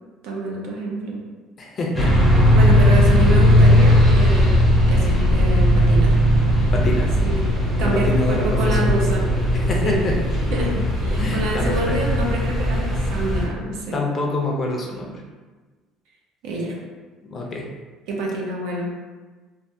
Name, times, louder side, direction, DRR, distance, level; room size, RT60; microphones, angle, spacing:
voice 1, 0.2-1.2 2.5-4.5 4.9-6.2 6.6-6.7 7.2-7.4 7.8-9.2 9.8-10.0 10.5-14.0 16.4-16.7 18.1-18.9, right 2 dB, 70° right, -1 dB, 0.6 m, -27 dB
voice 2, 1.6-2.1 6.7-7.2 7.8-9.0 9.7-10.2 11.2-12.0 13.9-15.2 17.3-17.7, left 2 dB, 30° left, -1 dB, 0.5 m, -26 dB
sound 1, 1.9-13.5, equal, 10° right, 0.7 m, -17 dB
3.2 x 2.2 x 2.7 m, 1.3 s
cardioid pair, 155°, 0 cm